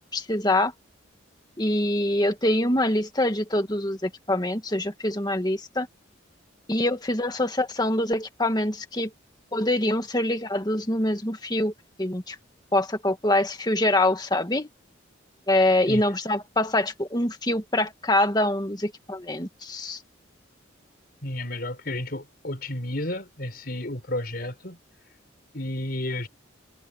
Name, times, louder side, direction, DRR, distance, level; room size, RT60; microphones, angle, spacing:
voice 1, 0.1-0.7 1.6-5.9 6.7-9.1 9.5-11.7 12.0-12.4 12.7-14.7 15.5-20.0, left 1 dB, 20° left, 1.9 m, -24 dB
voice 2, 21.2-24.8 25.5-26.3, left 1 dB, 50° left, 5.3 m, -32 dB
head